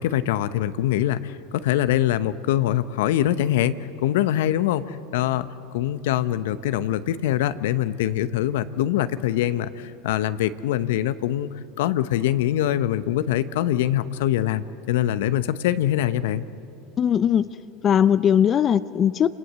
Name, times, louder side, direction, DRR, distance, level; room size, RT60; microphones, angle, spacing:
voice 1, 0.0-5.5 5.7-11.5 11.8-16.4, left 12 dB, 70° left, 13 dB, 0.8 m, -23 dB
voice 2, 17.0-17.5 17.8-19.3, left 9 dB, 35° left, 14 dB, 0.6 m, -19 dB
28.0 x 19.5 x 7.6 m, 2.6 s
hypercardioid pair, 85°, 0 cm